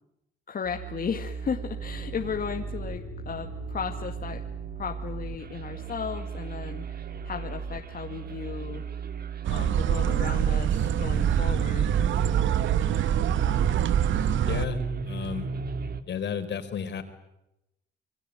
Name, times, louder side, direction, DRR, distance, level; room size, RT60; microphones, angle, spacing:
voice 1, 0.5-4.4 4.8-8.8 9.5-12.0, left 6 dB, 45° left, 4 dB, 2.1 m, -35 dB
sound 1, 0.7-16.0, right 6 dB, 50° right, 2.3 m, -35 dB
sound 2, 1.4-8.6, left 7 dB, 80° left, 5.4 m, -48 dB
sound 3, 9.4-14.7, right 9 dB, 75° right, 1.2 m, -25 dB
voice 2, 14.5-14.8 15.0-15.5 16.1-17.0, left 7 dB, 60° left, 9 dB, 4.2 m, -32 dB
27.5 x 22.0 x 9.1 m, 0.88 s
cardioid pair, 90°, 20 cm